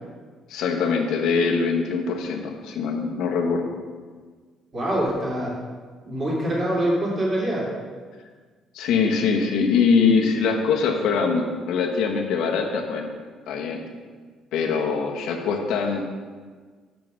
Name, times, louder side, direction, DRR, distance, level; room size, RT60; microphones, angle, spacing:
voice 1, 0.5-3.7 8.7-13.1 13.5-13.8 14.5-16.0, left 5 dB, 80° left, 2 dB, 1.1 m, -23 dB
voice 2, 4.7-5.5 6.0-7.6, right 1 dB, 30° right, -5 dB, 2.7 m, -24 dB
7.5 x 5.4 x 6.3 m, 1.5 s
cardioid pair, 155°, 0 cm